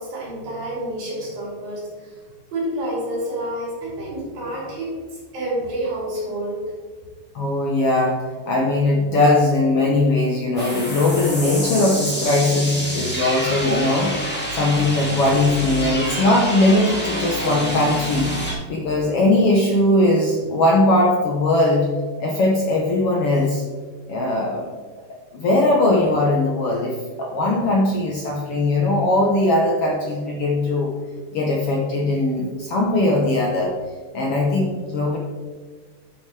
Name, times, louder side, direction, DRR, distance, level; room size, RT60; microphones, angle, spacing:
voice 1, 0.0-2.2 2.5-6.7, right 1 dB, 75° right, -6 dB, 5.2 m, -29 dB
voice 2, 7.3-14.2 14.5-18.3 18.7-21.9 22.2-23.6 24.1-24.7 25.3-30.9 31.3-33.8 34.1-35.2, left 2 dB, 70° left, -1 dB, 1.4 m, -19 dB
sound 1, 10.6-18.5, equal, 5° left, 1.5 m, -27 dB
10.5 x 8.5 x 3.4 m, 1.4 s
omnidirectional pair, 4.1 m